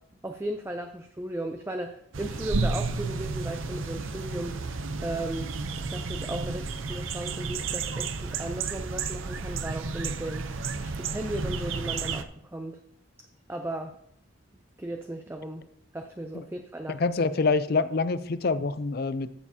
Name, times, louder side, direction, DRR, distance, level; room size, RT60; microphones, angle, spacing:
voice 1, 0.2-4.6 5.0-12.8 13.5-14.0 14.8-15.7 15.9-17.0, right 1 dB, 10° right, 5 dB, 0.4 m, -36 dB
sound 1, 2.1-12.2, right 4 dB, 75° right, 0.7 m, -32 dB
voice 2, 16.9-19.3, left 4 dB, 50° left, 14 dB, 0.5 m, -26 dB
14.5 x 7.0 x 2.8 m, 0.71 s
head